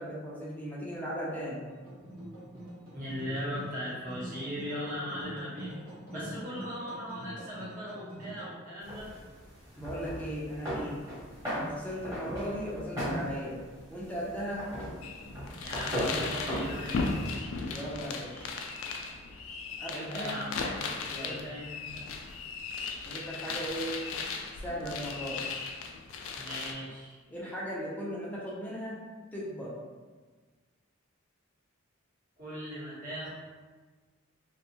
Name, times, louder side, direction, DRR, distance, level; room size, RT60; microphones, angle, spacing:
voice 1, 0.0-1.6 6.1-6.4 9.7-11.0 11.5-13.6 13.9-14.7 17.7-18.5 19.8-20.4 21.1-21.4 23.0-24.0 24.6-25.4 27.3-29.0 29.3-29.8, equal, 5° left, -6 dB, 0.5 m, -37 dB
sound 1, 1.7-8.5, right 1 dB, 85° right, 1.0 m, -45 dB
voice 2, 2.9-5.8 6.1-9.1 15.6-17.0 19.9-20.5 21.2-22.0 26.3-27.2 32.4-33.3, equal, 40° right, -9 dB, 1.0 m, -39 dB
sound 2, 8.8-17.3, equal, 15° right, 1.1 m, -37 dB
sound 3, 15.0-26.7, left 4 dB, 70° left, 0.3 m, -37 dB
2.5 x 2.3 x 2.8 m, 1.4 s
head